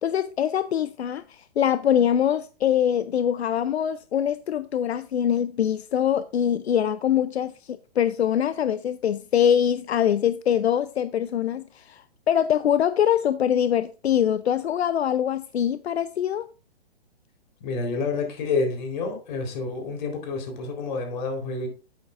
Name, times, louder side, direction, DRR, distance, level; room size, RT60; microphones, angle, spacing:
voice 1, 0.0-16.5, left 9 dB, 80° left, 0.6 m, -23 dB
voice 2, 17.6-21.7, left 4 dB, 45° left, 4.0 m, -28 dB
11.5 x 8.2 x 2.5 m
hypercardioid pair, 145°, 32 cm